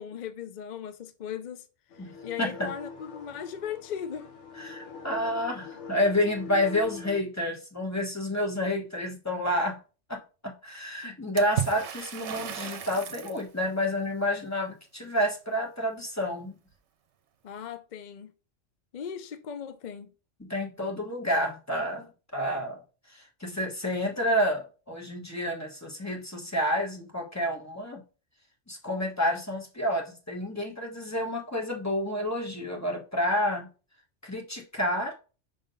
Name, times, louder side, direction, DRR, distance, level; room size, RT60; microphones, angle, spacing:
voice 1, 0.0-1.7 1.9-4.3 11.0-11.2 17.4-18.3 18.9-20.1, left 8 dB, 55° left, 0.5 m, -38 dB
sound 1, 1.9-7.2, left 6 dB, 75° left, 1.3 m, -43 dB
voice 2, 2.4-2.7 4.6-9.8 10.1-16.6 20.4-22.8 23.1-28.0 28.7-33.7 34.2-35.1, left 1 dB, 15° left, 1.2 m, -29 dB
Water / Splash splatter, 11.4-13.4, right 10 dB, 70° right, 1.0 m, -34 dB
5.5 x 3.7 x 5.3 m
omnidirectional pair, 1.2 m